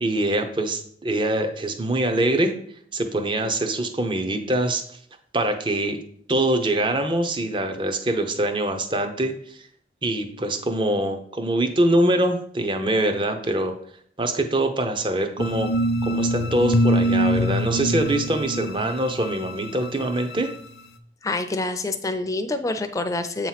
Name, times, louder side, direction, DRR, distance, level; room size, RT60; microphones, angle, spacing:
voice 1, 0.0-2.5 2.9-4.8 5.3-6.0 6.3-9.6 10.0-13.7 14.2-15.7 16.0-20.5, right 1 dB, 30° right, 7 dB, 0.7 m, -24 dB
sound 1, 15.4-20.5, equal, 70° left, 0.6 m, -24 dB
voice 2, 21.2-23.5, left 2 dB, 20° left, 8 dB, 0.5 m, -27 dB
7.9 x 3.0 x 5.7 m, 0.63 s
head